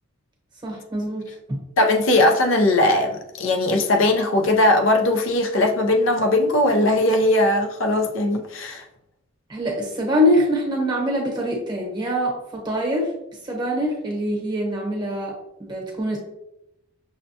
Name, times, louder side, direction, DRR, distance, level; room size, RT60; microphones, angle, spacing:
voice 1, 0.6-1.6 9.5-13.1 13.4-15.3 15.6-16.2, equal, 20° right, -1 dB, 0.9 m, -24 dB
voice 2, 1.8-8.8, left 1 dB, 65° left, 4 dB, 0.5 m, -19 dB
6.2 x 2.2 x 2.7 m, 0.86 s
head